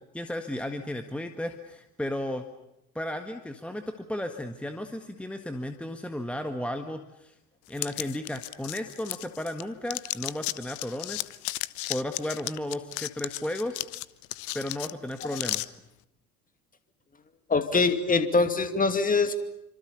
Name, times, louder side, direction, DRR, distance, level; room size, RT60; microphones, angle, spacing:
voice 1, 0.1-2.4 2.9-7.3 7.7-11.3 11.9-13.8 14.5-15.8, left 1 dB, 5° left, 6 dB, 1.6 m, -34 dB
sound 1, 7.8-9.6 9.9-15.7, left 19 dB, 45° left, 0.9 m, -34 dB
voice 2, 17.5-19.4, left 3 dB, 20° left, 9 dB, 2.5 m, -23 dB
28.0 x 26.0 x 7.0 m, 0.88 s
figure-of-eight pair, 70°, 43 cm